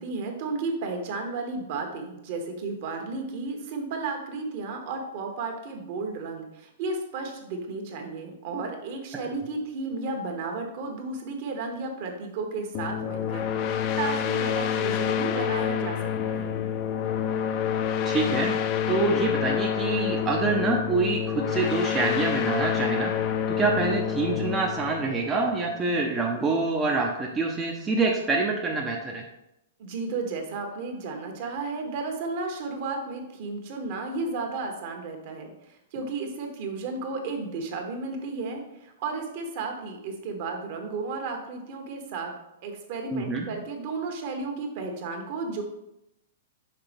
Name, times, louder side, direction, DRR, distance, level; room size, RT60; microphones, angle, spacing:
voice 1, 0.0-16.0 16.2-16.6 29.8-35.5 35.9-42.3 42.6-45.6, right 3 dB, 50° right, 3 dB, 1.4 m, -33 dB
sound 1, 12.7-26.1, left 8 dB, 35° left, 0.5 m, -28 dB
voice 2, 18.0-18.6 18.9-23.1 23.5-29.2 43.1-43.5, right 3 dB, 15° right, 0 dB, 0.6 m, -26 dB
5.8 x 3.9 x 5.2 m, 0.84 s
hypercardioid pair, 155°, 0 cm